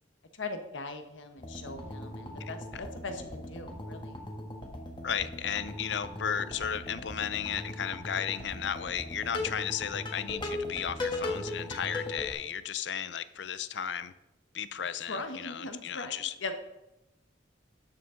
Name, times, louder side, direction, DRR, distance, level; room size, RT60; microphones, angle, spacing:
voice 1, 0.3-4.1 15.1-16.5, left 3 dB, 85° left, 7 dB, 1.1 m, -40 dB
sound 1, 1.4-12.3, left 1 dB, 25° left, 1.4 m, -39 dB
voice 2, 5.0-14.1 14.5-16.3, left 8 dB, 65° left, 14 dB, 0.5 m, -34 dB
12.5 x 6.9 x 3.8 m, 0.93 s
head